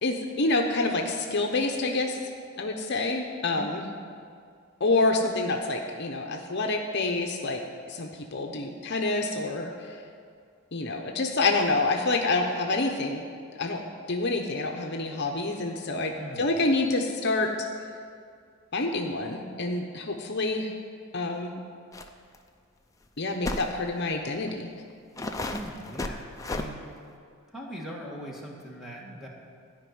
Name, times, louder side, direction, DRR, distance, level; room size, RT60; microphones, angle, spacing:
voice 1, 0.0-2.2 2.6-3.8 4.8-7.6 7.9-10.0 10.7-13.2 13.6-17.5 18.7-20.7 21.1-21.6 23.2-24.7, left 2 dB, 50° left, 3 dB, 0.8 m, -27 dB
voice 2, 3.6-3.9 16.2-16.5 25.5-26.8 27.5-29.3, equal, ahead, -3 dB, 1.7 m, -40 dB
sound 1, 21.9-22.1 22.3-22.4 23.4-23.7 24.5-24.6 25.2-26.7, left 2 dB, 15° left, 0.6 m, -33 dB
13.5 x 5.4 x 9.4 m, 2.3 s
head